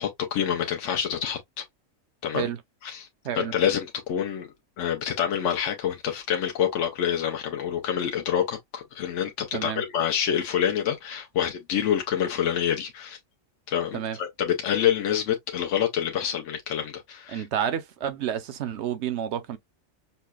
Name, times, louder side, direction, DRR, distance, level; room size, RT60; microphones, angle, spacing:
voice 1, 0.0-1.6 2.2-2.5 2.8-3.1 3.4-4.5 4.8-13.2 13.7-17.4, left 9 dB, 70° left, 1.0 m, -27 dB
voice 2, 9.5-9.8 13.9-14.2 17.3-19.6, right 9 dB, 65° right, 0.8 m, -30 dB
5.6 x 2.0 x 2.2 m
omnidirectional pair, 1.4 m